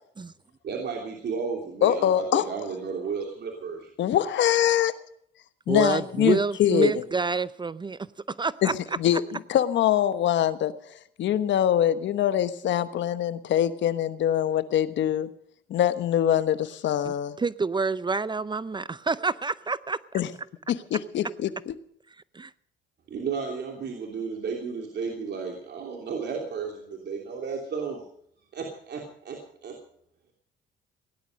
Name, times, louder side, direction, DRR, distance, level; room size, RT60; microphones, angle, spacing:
voice 1, 0.6-3.9 23.1-28.0 28.5-29.7, right 5 dB, 55° right, 1 dB, 3.1 m, -33 dB
voice 2, 1.8-2.5 4.0-4.9 5.7-7.0 8.6-9.2 9.5-10.7 11.2-15.3 15.7-17.4 20.1-20.3 20.7-21.7, left 11 dB, 65° left, 13 dB, 1.2 m, -23 dB
voice 3, 5.7-8.7 17.0-20.2 22.3-22.5, right 4 dB, 20° right, 18 dB, 0.5 m, -28 dB
17.0 x 11.0 x 6.5 m, 0.67 s
supercardioid pair, 80°, 20 cm